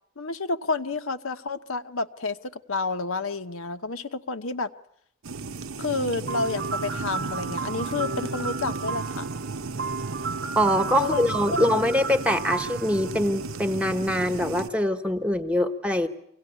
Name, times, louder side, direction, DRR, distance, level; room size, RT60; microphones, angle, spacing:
voice 1, 0.2-4.7 5.8-9.3 11.0-11.8, left 3 dB, 70° left, 8 dB, 1.0 m, -30 dB
sound 1, 5.2-14.7, right 4 dB, 75° right, 0.9 m, -35 dB
sound 2, 6.3-14.1, right 4 dB, 50° right, 1.0 m, -34 dB
voice 2, 10.6-16.1, equal, 5° right, 7 dB, 1.2 m, -24 dB
24.5 x 17.5 x 9.9 m, 0.72 s
head